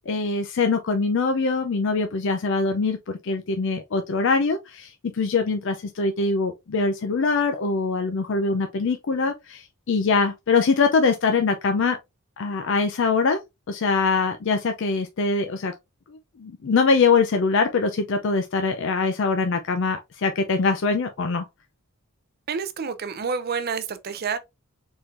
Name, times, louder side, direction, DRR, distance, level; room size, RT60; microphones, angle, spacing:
voice 1, 0.1-12.0 12.4-13.4 13.7-15.8 16.4-21.5, left 4 dB, 60° left, 0.4 m, -23 dB
voice 2, 22.5-24.4, right 5 dB, 45° right, 0.5 m, -28 dB
4.4 x 3.6 x 2.5 m
head